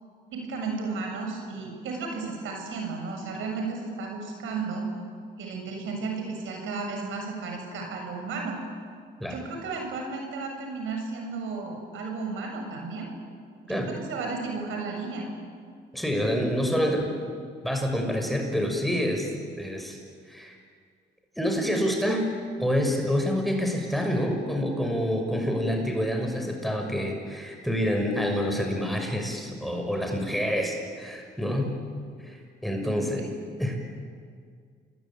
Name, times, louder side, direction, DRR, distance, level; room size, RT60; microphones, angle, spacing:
voice 1, 0.3-4.8 5.4-8.5 9.3-13.1 13.6-15.3 32.8-33.3, right 4 dB, 80° right, 2 dB, 7.3 m, -34 dB
voice 2, 15.9-17.1 17.6-19.3 19.6-20.0 20.3-20.6 21.4-22.3 22.6-31.8 32.2-33.2 33.6-33.8, equal, ahead, 3 dB, 5.9 m, -27 dB
28.5 x 21.5 x 9.1 m, 2.1 s
cardioid pair, 90°, 20 cm